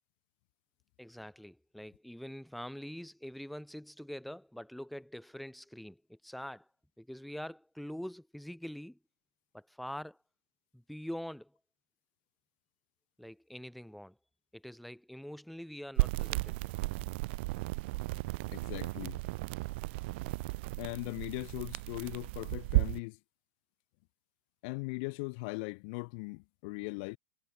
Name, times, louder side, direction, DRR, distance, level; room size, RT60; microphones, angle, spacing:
voice 1, 1.0-6.7 7.0-9.0 9.5-10.2 10.7-11.5 13.2-14.2 14.5-16.6, equal, ahead, 0.7 m, -44 dB
sound 1, 16.0-23.0, right 23 dB, 55° right, 0.4 m, -34 dB
voice 2, 18.5-19.2 20.8-23.2 24.6-27.2, left 31 dB, 50° left, 0.5 m, -39 dB
hypercardioid pair, 125°, 7 cm